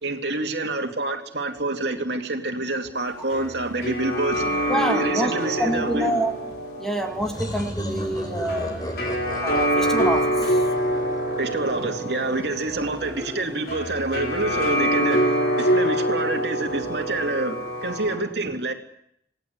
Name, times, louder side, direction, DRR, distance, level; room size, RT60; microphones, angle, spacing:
voice 1, 0.0-4.5 4.9-6.1 11.4-18.7, right 2 dB, 70° right, 2.7 m, -27 dB
sound 1, 2.8-2.9 4.2-5.1 5.6-6.6 7.0-7.9 8.3-9.2 9.8-11.9 12.6-13.5 14.3-15.4 16.6-17.3, equal, 20° right, 4.8 m, -41 dB
sound 2, 3.0-18.2, right 1 dB, 60° left, 4.6 m, -26 dB
voice 2, 4.7-6.3 6.8-8.8 9.4-10.6, equal, 5° left, 2.0 m, -27 dB
sound 3, 7.2-11.8, equal, 25° left, 4.0 m, -35 dB
27.0 x 18.5 x 8.1 m
head